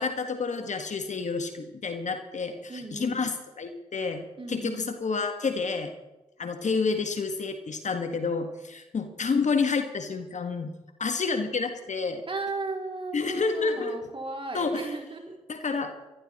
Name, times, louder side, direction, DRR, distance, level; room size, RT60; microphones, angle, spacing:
voice 1, 0.0-4.2 4.5-5.9 6.4-10.7 11.0-12.2 13.1-13.9 14.5-14.9 15.5-15.9, left 4 dB, 50° left, 7 dB, 1.7 m, -29 dB
voice 2, 2.7-3.2 4.4-4.8 12.3-15.4, right 3 dB, 35° right, 1 dB, 4.5 m, -35 dB
20.5 x 13.5 x 4.3 m, 1.0 s
hypercardioid pair, 40°, 16 cm